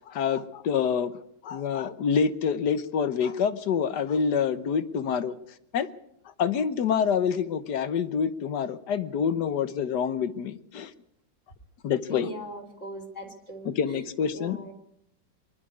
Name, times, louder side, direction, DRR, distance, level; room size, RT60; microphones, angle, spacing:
voice 1, 0.1-1.1 1.4-5.3 5.7-5.9 6.4-10.9 11.8-12.3 13.6-14.6, left 7 dB, 65° left, 13 dB, 1.5 m, -27 dB
voice 2, 12.1-14.0 14.3-14.7, equal, 40° left, 4 dB, 3.5 m, -40 dB
23.5 x 11.5 x 9.7 m, 0.74 s
omnidirectional pair, 2.1 m